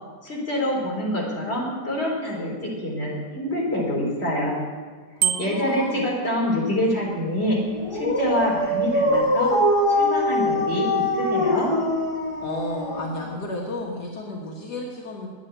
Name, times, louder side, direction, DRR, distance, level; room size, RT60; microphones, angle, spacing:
voice 1, 0.2-4.6 5.4-7.6 7.9-9.5 9.9-11.7, left 1 dB, 35° left, -4 dB, 4.2 m, -26 dB
voice 2, 5.2-6.1 12.4-15.3, left 2 dB, 75° left, -2 dB, 2.1 m, -32 dB
Bicycle bell, 5.2-5.8, right 10 dB, 80° right, 1.3 m, -25 dB
Dog, 7.7-13.4, left 1 dB, 20° left, 2.3 m, -23 dB
10.5 x 9.5 x 8.8 m, 1.5 s
omnidirectional pair, 1.8 m